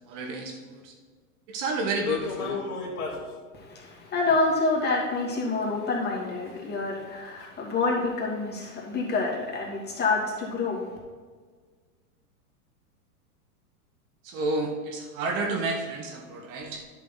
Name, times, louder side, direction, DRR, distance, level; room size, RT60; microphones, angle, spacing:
voice 1, 0.1-0.9 1.5-2.6 14.2-16.8, right 3 dB, 45° right, 2 dB, 1.5 m, -31 dB
sound 1, 2.0-3.3 4.3-4.4 5.1-5.2 5.7-5.8 6.3-6.4 7.0-7.1 7.4-7.5, left 5 dB, 65° left, 2.2 m, -32 dB
voice 2, 3.5-10.9, left 3 dB, 20° left, -3 dB, 2.6 m, -27 dB
11.0 x 6.9 x 4.0 m, 1.6 s
hypercardioid pair, 115°, 45 cm